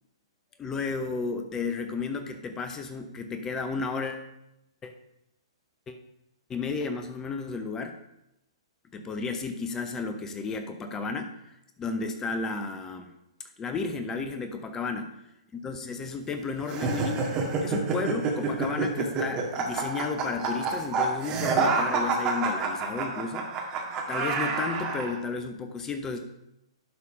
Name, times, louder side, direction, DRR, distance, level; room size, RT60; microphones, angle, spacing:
voice 1, 0.6-4.3 4.8-4.9 5.9-6.0 6.5-8.0 8.9-11.4 11.8-13.1 13.6-15.1 15.5-17.3 17.6-23.8 24.1-26.3, left 4 dB, 20° left, 7 dB, 0.8 m, -33 dB
sound 1, 16.7-25.1, right 4 dB, 30° right, 1.9 m, -28 dB
11.0 x 4.2 x 5.2 m, 0.86 s
figure-of-eight pair, 115°, 3 cm